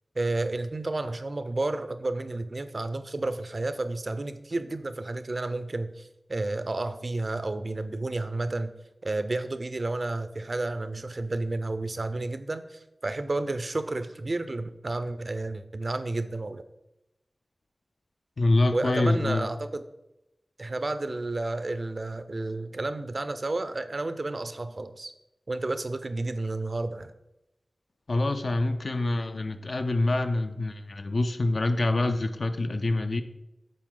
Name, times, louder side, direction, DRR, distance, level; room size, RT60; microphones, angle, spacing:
voice 1, 0.2-8.7 9.0-16.6 18.7-19.8 20.6-25.1 25.5-27.1, right 2 dB, 50° right, 11 dB, 0.4 m, -31 dB
voice 2, 18.4-19.5 28.1-33.2, left 2 dB, 65° left, 8 dB, 0.5 m, -26 dB
7.5 x 4.3 x 3.8 m, 0.91 s
wide cardioid pair, 80°, 0 cm